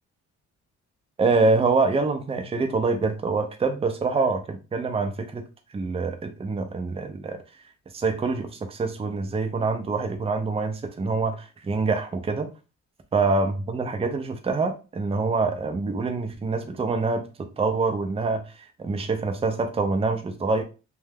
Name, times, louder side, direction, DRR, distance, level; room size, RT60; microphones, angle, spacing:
voice 1, 1.2-5.4 5.7-7.4 7.9-12.5 13.1-18.5 18.8-20.6, right 3 dB, 20° right, 0.5 m, -25 dB
2.6 x 2.2 x 3.4 m
cardioid pair, 90°, 30 cm